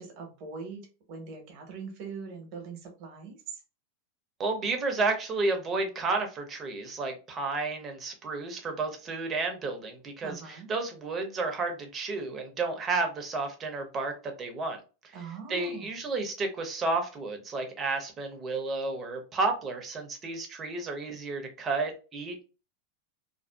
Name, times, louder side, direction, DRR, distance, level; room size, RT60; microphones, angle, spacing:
voice 1, 0.0-3.6 10.2-10.7 15.1-16.0, right 5 dB, 55° right, 4 dB, 1.0 m, -42 dB
voice 2, 4.4-14.8 15.5-22.4, right 3 dB, 30° right, 4 dB, 0.8 m, -31 dB
2.6 x 2.3 x 2.3 m, 0.33 s
hypercardioid pair, 110°, 0 cm